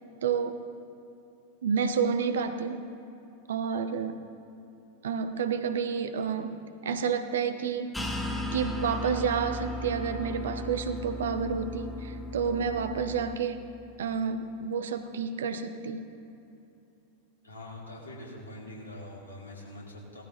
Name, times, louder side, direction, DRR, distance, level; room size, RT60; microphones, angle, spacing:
voice 1, 0.2-0.6 1.6-2.9 3.5-4.3 5.0-7.9 8.5-13.6 14.0-16.0, right 6 dB, 60° right, 9 dB, 0.8 m, -30 dB
sound 1, 7.9-13.3, left 1 dB, 5° left, 1.0 m, -36 dB
voice 2, 17.4-20.2, left 1 dB, 70° left, -2 dB, 2.6 m, -44 dB
18.5 x 14.0 x 2.8 m, 2.8 s
figure-of-eight pair, 90°, 0 cm